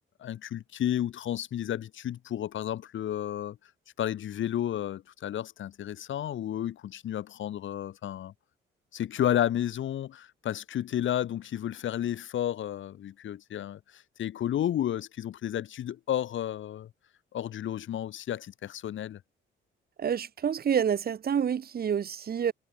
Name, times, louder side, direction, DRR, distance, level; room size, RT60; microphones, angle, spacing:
voice 1, 0.2-3.6 4.0-8.3 8.9-16.9 17.3-19.2, left 11 dB, 70° left, 1.9 m, -32 dB
voice 2, 20.0-22.5, right 8 dB, 50° right, 1.8 m, -28 dB
cardioid pair, 120°, 21 cm